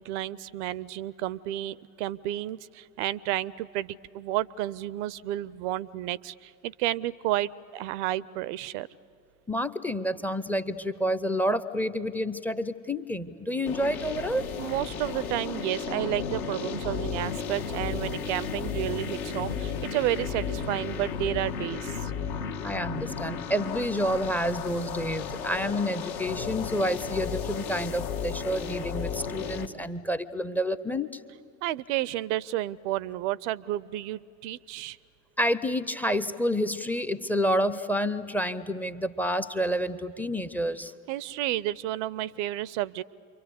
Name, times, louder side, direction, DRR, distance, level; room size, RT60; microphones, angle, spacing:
voice 1, 0.0-8.9 14.6-22.1 31.6-35.0 41.1-43.0, right 14 dB, 50° right, 22 dB, 0.6 m, -31 dB
voice 2, 9.5-14.5 22.6-31.2 35.4-40.9, equal, 5° left, 17 dB, 0.6 m, -29 dB
sound 1, 13.7-29.7, left 6 dB, 60° left, 1.4 m, -34 dB
29.0 x 24.0 x 8.3 m, 2.4 s
figure-of-eight pair, 70°, 47 cm